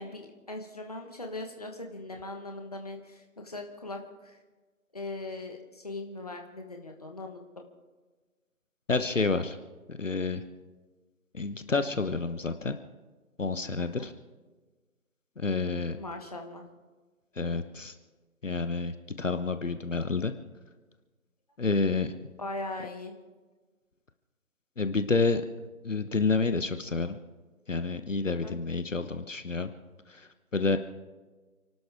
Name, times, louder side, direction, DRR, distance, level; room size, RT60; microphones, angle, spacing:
voice 1, 0.0-4.4 4.9-7.4 13.8-14.1 16.0-16.7 22.4-23.1 28.3-28.5, left 2 dB, 25° left, 3 dB, 1.4 m, -40 dB
voice 2, 8.9-9.6 9.9-10.4 11.3-12.8 13.4-14.1 15.4-16.0 17.4-17.9 18.4-20.3 21.6-22.1 24.8-25.4 25.8-27.2 27.7-29.7 30.1-30.8, left 4 dB, 60° left, 9 dB, 1.1 m, -29 dB
30.0 x 12.0 x 3.6 m, 1.3 s
figure-of-eight pair, 170°, 44 cm